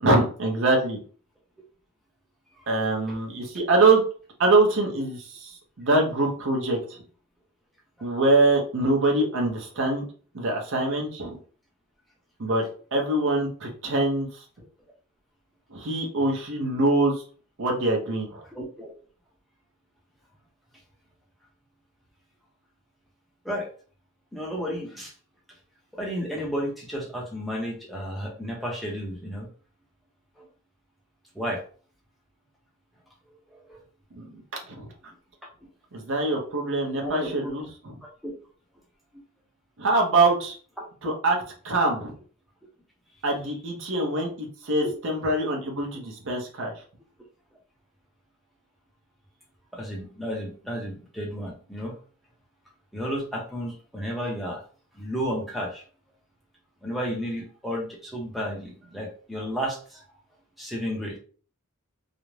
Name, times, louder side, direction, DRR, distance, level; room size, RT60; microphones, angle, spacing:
voice 1, 0.0-1.0 2.7-4.0 4.4-7.0 8.0-10.0 10.3-11.4 12.4-12.6 12.9-14.4 15.7-17.2 17.6-18.4 34.1-34.4 34.7-34.9 35.9-37.6 39.8-40.6 41.0-41.4 41.6-42.1 43.2-46.7, right 2 dB, 60° right, 1 dB, 0.6 m, -24 dB
voice 2, 18.5-18.9 23.4-23.7 24.3-25.1 25.9-29.5 30.4-30.5 31.3-31.6 33.5-33.8 37.0-37.3 38.2-38.3 49.7-51.9 52.9-54.6 54.9-55.8 56.8-60.0 60.6-61.2, equal, ahead, -2 dB, 0.6 m, -32 dB
2.4 x 2.0 x 3.1 m, 0.41 s
head